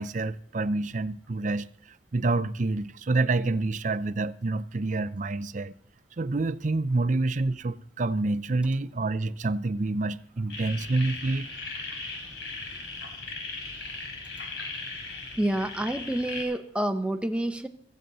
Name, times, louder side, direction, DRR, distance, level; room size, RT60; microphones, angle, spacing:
voice 1, 0.0-1.7 2.1-5.7 6.2-11.5, right 2 dB, 40° right, 0.5 m, -27 dB
sound 1, 10.5-16.4, left 3 dB, 65° left, 4.8 m, -38 dB
voice 2, 15.4-17.7, right 1 dB, 5° right, 0.8 m, -28 dB
15.5 x 15.0 x 4.1 m
head